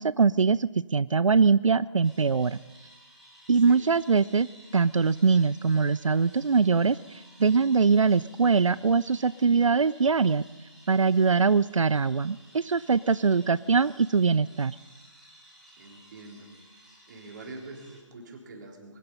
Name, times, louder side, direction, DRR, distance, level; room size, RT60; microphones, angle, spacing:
voice 1, 0.0-2.6 3.5-4.5 4.7-10.4 10.9-14.8, right 5 dB, 85° right, 18 dB, 0.4 m, -22 dB
sound 1, 2.0-18.0, equal, ahead, 2.3 m, -55 dB
voice 2, 15.8-16.5 16.8-19.0, right 3 dB, 35° right, 0 dB, 3.9 m, -45 dB
22.5 x 11.5 x 5.5 m, 1.2 s
figure-of-eight pair, 150°, 16 cm